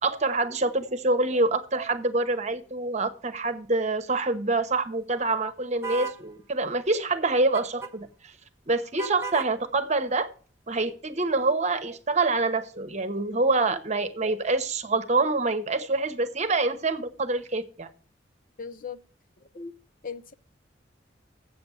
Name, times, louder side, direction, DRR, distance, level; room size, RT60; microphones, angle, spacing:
voice 1, 0.0-8.3 8.7-10.3 10.7-17.9, right 3 dB, 40° right, 1.0 m, -26 dB
sound 1, 5.8-6.2 7.5-7.9 9.0-9.5, right 5 dB, 15° right, 0.9 m, -34 dB
voice 2, 18.6-19.0 19.4-19.7 20.0-20.3, left 5 dB, 45° left, 0.6 m, -38 dB
7.8 x 6.8 x 8.3 m
head